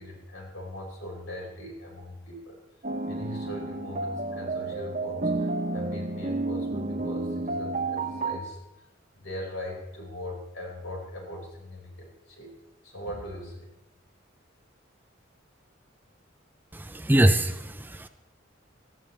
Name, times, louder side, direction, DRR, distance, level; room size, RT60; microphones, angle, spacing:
voice 1, 0.0-2.6 3.1-8.8 9.1-12.5 12.8-13.7, left 1 dB, 80° left, -2 dB, 5.5 m, -40 dB
sound 1, 2.8-8.4, right 2 dB, 40° right, 0.8 m, -31 dB
voice 2, 16.7-18.1, right 1 dB, 10° right, 9 dB, 0.5 m, -23 dB
19.0 x 15.0 x 3.4 m, 0.92 s
head